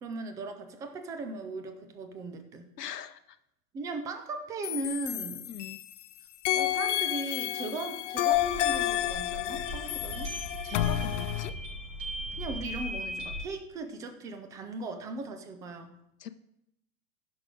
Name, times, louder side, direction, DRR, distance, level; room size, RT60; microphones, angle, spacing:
voice 1, 0.0-2.7 3.7-5.5 6.5-10.3 12.4-16.0, right 3 dB, 10° right, 8 dB, 0.3 m, -38 dB
voice 2, 2.8-3.4 5.5-5.8 10.6-11.5 16.2-16.3, left 10 dB, 85° left, 10 dB, 0.7 m, -41 dB
sound 1, 4.6-6.0 6.5-11.5, left 14 dB, 50° left, 0.6 m, -30 dB
sound 2, 8.3-13.4, equal, 55° right, 4.4 m, -37 dB
15.0 x 6.0 x 3.7 m, 0.83 s
hypercardioid pair, 105°, 46 cm